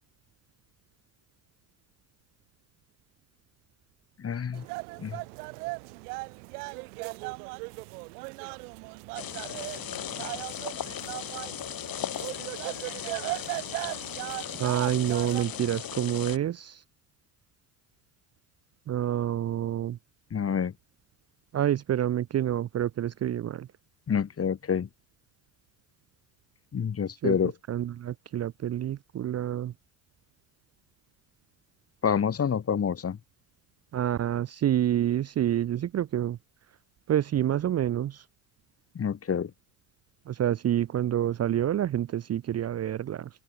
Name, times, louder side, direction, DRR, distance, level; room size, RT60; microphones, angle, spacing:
voice 1, 4.2-4.6 5.0-5.2 20.3-20.7 24.1-24.9 26.7-27.5 32.0-33.2 38.9-39.5, left 7 dB, 30° left, 1.7 m, -27 dB
sound 1, 4.5-15.4, right 27 dB, 75° right, 4.6 m, -38 dB
sound 2, 9.1-16.4, left 10 dB, 50° left, 5.2 m, -37 dB
voice 2, 14.6-16.8 18.9-20.0 21.5-23.7 27.2-27.4 27.7-29.7 33.9-36.4 37.1-38.2 40.3-43.3, right 11 dB, 35° right, 0.7 m, -28 dB
open air
hypercardioid pair, 65°, 46 cm